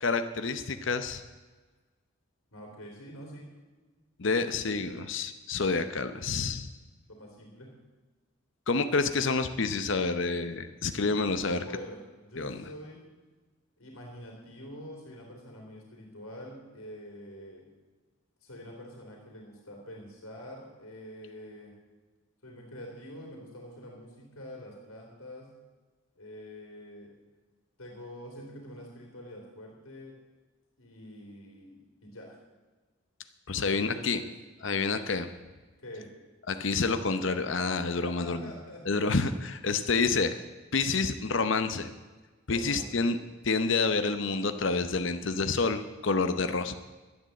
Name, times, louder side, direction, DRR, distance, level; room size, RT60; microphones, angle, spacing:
voice 1, 0.0-1.2 4.2-6.7 8.7-11.6 12.4-12.6 33.5-34.2 34.6-35.3 36.5-38.5 38.9-40.4 40.7-41.9 42.5-43.2 43.4-46.8, left 4 dB, 60° left, 9 dB, 0.8 m, -28 dB
voice 2, 2.5-3.5 4.2-5.0 7.1-7.7 11.6-13.1 13.8-17.6 18.4-21.8 22.4-25.5 26.2-27.1 27.8-30.1 30.8-32.4 33.5-34.3 35.8-36.1 38.0-39.2 42.5-43.1, equal, 85° left, 0 dB, 3.2 m, -46 dB
12.5 x 10.0 x 7.7 m, 1.3 s
head